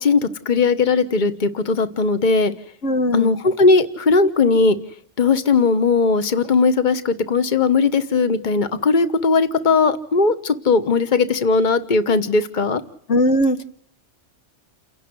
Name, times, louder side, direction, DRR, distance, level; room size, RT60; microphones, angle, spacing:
voice 1, 0.0-2.5 3.1-4.8 5.2-12.8, left 4 dB, 40° left, 12 dB, 1.4 m, -18 dB
voice 2, 2.8-3.3 13.1-13.6, left 1 dB, 85° left, 9 dB, 1.7 m, -19 dB
29.5 x 11.0 x 9.7 m, 0.63 s
omnidirectional pair, 1.2 m